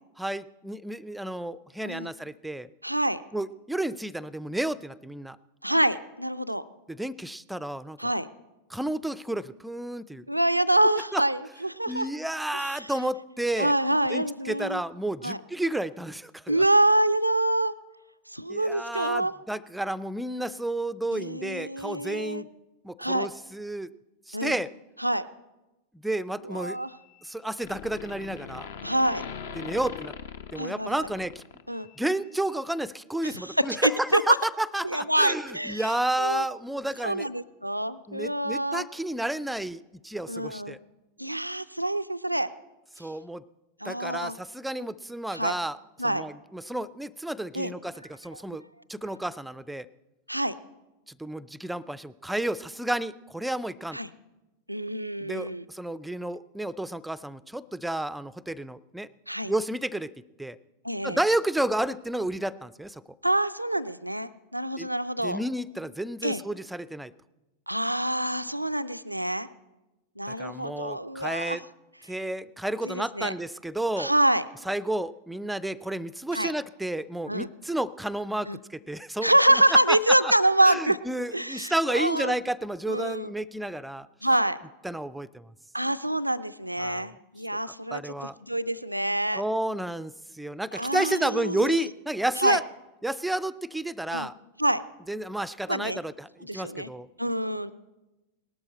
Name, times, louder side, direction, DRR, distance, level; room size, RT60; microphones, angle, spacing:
voice 1, 0.2-2.7 3.3-5.4 6.9-8.1 8.7-10.2 11.0-11.2 11.9-13.8 14.1-16.6 18.5-22.5 22.8-23.9 24.3-24.7 26.0-26.8 27.2-28.7 29.6-30.1 30.5-31.4 32.0-37.3 38.1-40.8 43.0-43.4 43.8-45.8 46.0-48.6 48.9-49.9 51.1-54.0 55.2-59.1 59.5-60.1 60.4-60.6 61.0-63.0 64.8-64.9 65.2-67.1 70.3-71.6 72.1-74.1 74.7-79.3 79.9-80.3 80.6-84.1 84.8-85.5 86.8-87.1 87.6-88.4 89.3-92.6 93.0-94.3 95.1-97.1, right 1 dB, 5° right, 18 dB, 0.4 m, -31 dB
voice 2, 2.8-3.2 5.6-6.6 8.0-8.3 10.3-12.1 12.5-12.9 13.6-14.8 15.2-15.4 16.5-17.7 18.3-19.3 21.1-22.4 23.0-23.3 24.3-24.6 25.0-25.3 26.4-26.9 28.8-29.3 30.6-31.1 31.7-31.9 33.2-33.5 33.8-34.4 34.8-35.9 36.2-36.4 37.0-38.9 40.3-40.8 41.2-42.5 43.0-43.1 43.8-44.4 45.3-45.6 46.0-46.3 47.5-47.7 48.3-48.4 50.3-50.5 53.9-54.1 54.7-55.6 59.3-59.5 60.8-61.2 63.2-65.4 66.2-66.4 67.7-69.5 70.2-71.6 72.8-73.3 74.0-74.4 76.3-76.5 77.3-77.5 78.5-78.6 79.2-81.0 81.3-82.3 82.9-83.3 84.2-84.6 85.7-89.4 90.7-91.9 92.4-92.6 94.1-94.3 94.6-94.8 95.7-96.0 96.4-96.9 97.2-97.7, right 1 dB, 90° right, 13 dB, 0.4 m, -26 dB
sound 1, 26.6-27.3 27.6-32.0, left 7 dB, 60° left, 0.8 m, -41 dB
18.5 x 12.5 x 4.3 m, 1.0 s
figure-of-eight pair, 90°, 0 cm